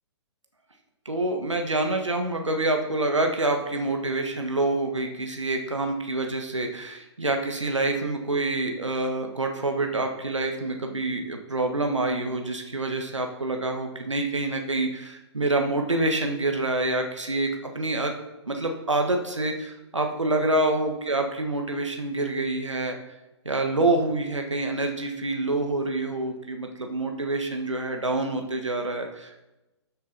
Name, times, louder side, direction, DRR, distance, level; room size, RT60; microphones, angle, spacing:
voice 1, 1.0-17.5 17.7-18.1 18.5-23.0 23.4-29.4, right 2 dB, 90° right, 3 dB, 1.3 m, -27 dB
13.0 x 7.3 x 4.0 m, 1.0 s
figure-of-eight pair, 125°, 15 cm